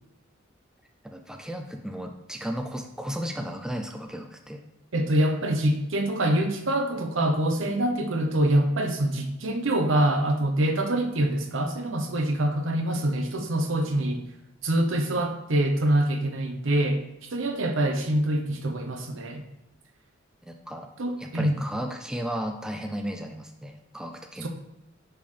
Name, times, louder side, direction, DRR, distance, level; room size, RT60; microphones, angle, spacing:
voice 1, 1.0-4.6 20.4-20.9 21.2-24.5, equal, 5° right, 4 dB, 0.3 m, -34 dB
voice 2, 4.9-14.2 14.6-17.0 17.3-19.4 21.0-21.6 24.4-24.5, right 1 dB, 70° right, 5 dB, 0.9 m, -25 dB
9.8 x 3.8 x 3.3 m, 0.87 s
head